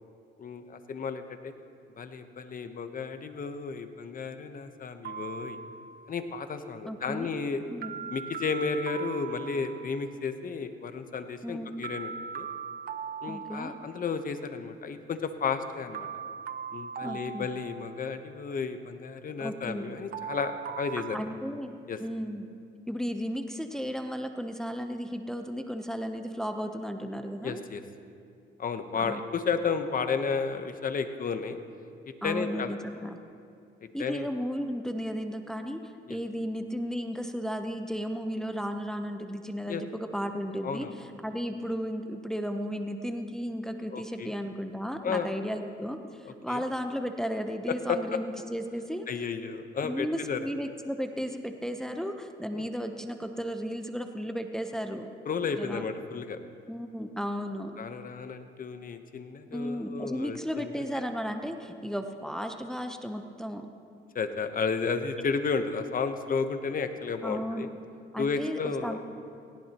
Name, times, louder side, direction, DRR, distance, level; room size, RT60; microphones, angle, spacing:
voice 1, 0.4-1.5 2.0-5.6 6.1-7.6 8.1-12.5 13.2-16.1 16.7-21.2 21.9-22.0 27.4-27.8 28.6-31.6 32.2-32.7 34.0-34.3 36.1-36.2 39.7-39.8 40.6-40.9 43.9-44.3 45.0-45.3 46.3-46.6 47.7-48.2 49.1-50.4 52.5-52.7 55.3-56.4 57.8-60.8 64.1-67.7 68.2-69.0, left 5 dB, 45° left, 8 dB, 1.0 m, -32 dB
sound 1, 5.0-6.2 7.8-10.1 11.8-14.1 15.9-18.3 20.1-21.2, right 7 dB, 45° right, 0.6 m, -40 dB
voice 2, 6.8-7.3 7.7-8.0 11.4-11.7 13.3-13.7 17.0-17.5 19.4-20.0 21.1-22.4 22.9-27.6 29.0-29.2 32.2-33.2 33.9-49.1 49.8-55.1 55.6-55.9 56.7-57.8 59.5-63.7 67.2-67.7 68.1-69.0, equal, 5° left, 6 dB, 0.8 m, -34 dB
19.0 x 16.5 x 3.0 m, 2.4 s
cardioid pair, 90°, 20 cm